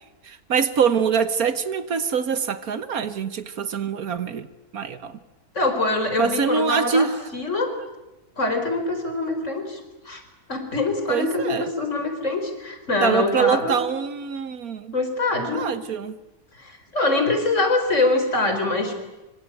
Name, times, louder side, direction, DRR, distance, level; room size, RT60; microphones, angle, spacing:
voice 1, 0.2-4.5 4.7-5.2 6.2-7.1 11.1-11.7 13.0-14.9 15.5-16.2, right 6 dB, 65° right, 1.6 m, -24 dB
voice 2, 5.5-7.1 7.3-7.7 8.4-9.8 10.1-10.2 10.5-13.8 14.9-15.6 16.6-18.9, left 2 dB, 50° left, 4.7 m, -24 dB
26.0 x 24.5 x 9.3 m
omnidirectional pair, 1.7 m